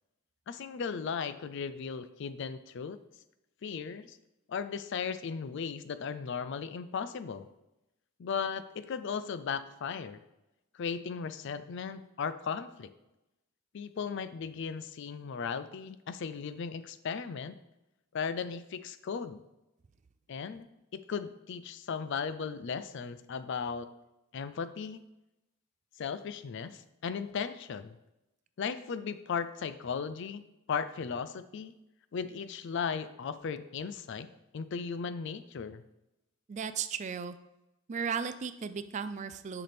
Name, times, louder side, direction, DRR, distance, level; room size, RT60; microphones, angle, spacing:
voice 1, 0.5-3.0 3.6-4.2 4.5-7.5 8.2-10.2 10.7-12.9 13.7-17.5 18.1-19.4 20.3-20.7 20.9-23.9 24.3-25.0 26.0-28.0 28.6-31.7 32.1-34.3 34.5-35.8, left 6 dB, 60° left, 12 dB, 0.4 m, -36 dB
voice 2, 36.5-37.4 37.9-39.6, right 6 dB, 35° right, 12 dB, 0.3 m, -35 dB
6.6 x 5.9 x 3.4 m, 0.93 s
head